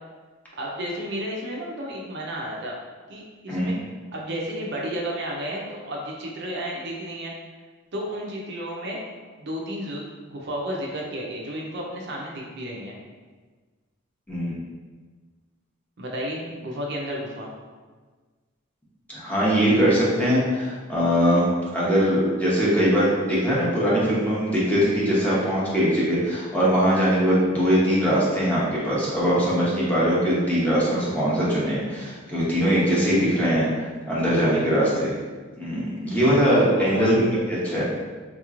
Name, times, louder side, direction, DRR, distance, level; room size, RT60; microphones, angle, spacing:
voice 1, 0.6-2.7 3.1-3.7 4.1-7.3 7.9-9.0 9.4-13.0 16.0-17.5 34.4-34.8 36.8-37.1, equal, 55° right, -2 dB, 0.6 m, -32 dB
voice 2, 19.1-21.5 21.7-35.1 35.5-37.1 37.5-37.8, equal, 5° left, -8 dB, 0.8 m, -21 dB
3.9 x 3.0 x 2.4 m, 1.4 s
head